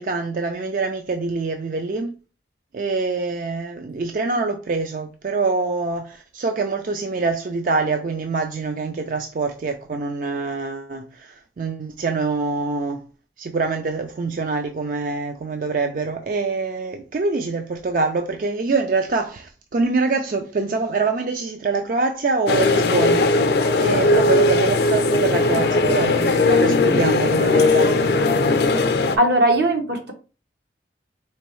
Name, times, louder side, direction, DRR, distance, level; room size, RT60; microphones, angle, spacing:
voice 1, 0.0-2.1 2.7-13.0 13.4-23.3 23.8-27.9, right 3 dB, 50° right, 0.4 m, -25 dB
sound 1, 22.5-29.2, left 2 dB, 65° left, 0.5 m, -18 dB
voice 2, 29.2-30.1, right 1 dB, 80° right, 1.2 m, -18 dB
4.5 x 3.0 x 3.1 m
head